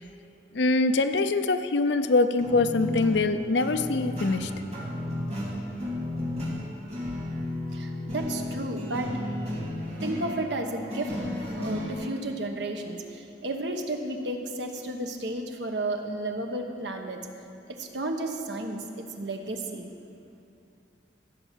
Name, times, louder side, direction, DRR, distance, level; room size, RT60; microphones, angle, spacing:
voice 1, 0.5-4.5, left 3 dB, 75° left, 9 dB, 0.6 m, -24 dB
sound 1, 2.4-11.9, left 1 dB, 35° right, 2.4 m, -33 dB
voice 2, 7.7-9.1 10.0-11.1 11.6-17.2 17.7-19.9, right 2 dB, 75° right, 4 dB, 1.1 m, -33 dB
15.5 x 5.6 x 7.4 m, 2.6 s
head